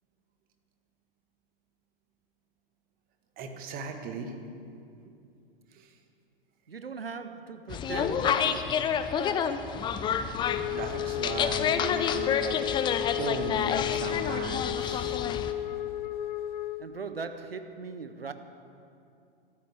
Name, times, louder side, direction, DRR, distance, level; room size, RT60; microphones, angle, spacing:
voice 1, 3.4-4.3 5.7-5.9 10.7-12.6 13.1-15.2, right 4 dB, 30° right, 1.5 m, -37 dB
voice 2, 6.7-8.9 16.8-18.3, right 5 dB, 80° right, 0.9 m, -39 dB
sound 1, 7.7-15.5, left 7 dB, 15° left, 0.5 m, -29 dB
Wind instrument woodwind instrument, 10.4-16.9, left 14 dB, 55° left, 0.7 m, -33 dB
22.0 x 13.5 x 3.6 m
figure-of-eight pair, 100°, 29 cm